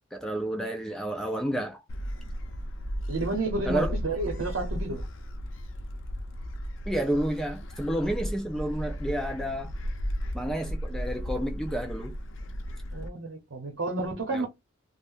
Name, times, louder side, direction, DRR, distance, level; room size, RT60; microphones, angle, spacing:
voice 1, 0.1-1.8 3.7-3.9 6.9-9.7 10.3-12.2 14.3-14.5, right 1 dB, 5° left, 0.5 m, -30 dB
Gull seagull, 1.9-13.1, equal, 65° left, 0.5 m, -35 dB
voice 2, 3.1-5.0 12.9-14.5, right 2 dB, 70° right, 0.8 m, -31 dB
2.5 x 2.0 x 3.6 m
head